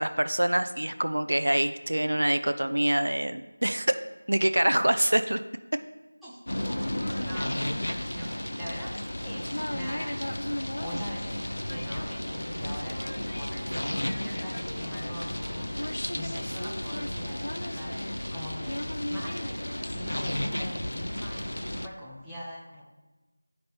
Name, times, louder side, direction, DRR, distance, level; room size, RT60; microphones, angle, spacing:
voice 1, 0.0-3.9 4.3-5.4, right 1 dB, 75° right, 10 dB, 0.4 m, -25 dB
voice 2, 6.2-6.8 7.2-22.8, equal, ahead, -12 dB, 0.6 m, -42 dB
sound 1, 6.5-21.9, left 1 dB, 80° left, 0.5 m, -33 dB
9.5 x 5.2 x 2.8 m, 1.1 s
figure-of-eight pair, 175°, 0 cm